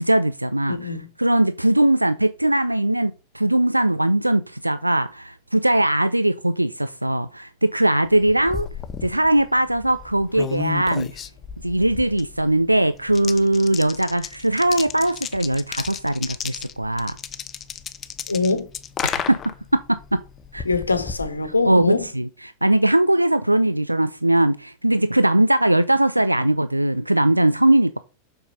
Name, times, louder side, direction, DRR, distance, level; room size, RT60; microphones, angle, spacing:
voice 1, 0.0-8.7 9.0-11.1 11.6-17.2 19.0-20.2 20.5-20.6 21.7-28.0, right 1 dB, 85° right, 0.4 m, -20 dB
voice 2, 0.7-1.1 18.3-18.7 20.6-22.0, left 3 dB, 80° left, 1.3 m, -23 dB
sound 1, 8.0-22.1, left 8 dB, 25° left, 0.8 m, -34 dB
7.2 x 6.7 x 5.4 m
figure-of-eight pair, 90°, 0 cm